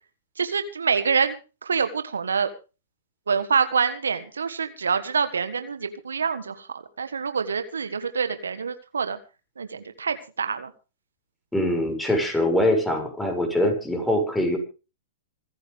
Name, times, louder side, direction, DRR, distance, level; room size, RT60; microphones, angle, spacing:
voice 1, 0.4-1.3 1.6-2.5 3.3-6.7 7.0-9.2 9.6-10.7, right 6 dB, 85° right, 10 dB, 1.6 m, -26 dB
voice 2, 11.5-14.6, left 1 dB, 5° left, 3 dB, 6.6 m, -23 dB
26.5 x 9.8 x 3.6 m, 0.33 s
hypercardioid pair, 115°, 0 cm